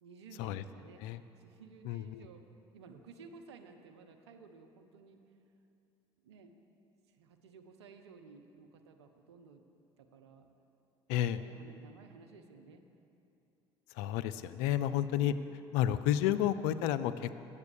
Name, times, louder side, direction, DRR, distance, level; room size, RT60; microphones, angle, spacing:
voice 1, 0.0-1.1 1.4-2.4 2.7-5.2 6.2-6.6 7.2-9.6 10.0-10.5 11.4-12.8 14.7-15.2, right 4 dB, 80° right, 5 dB, 0.7 m, -55 dB
voice 2, 1.8-2.3 11.1-11.4 14.0-15.3 15.7-17.4, left 11 dB, 65° left, 13 dB, 0.4 m, -31 dB
8.2 x 7.0 x 6.8 m, 2.8 s
figure-of-eight pair, 60°, 14 cm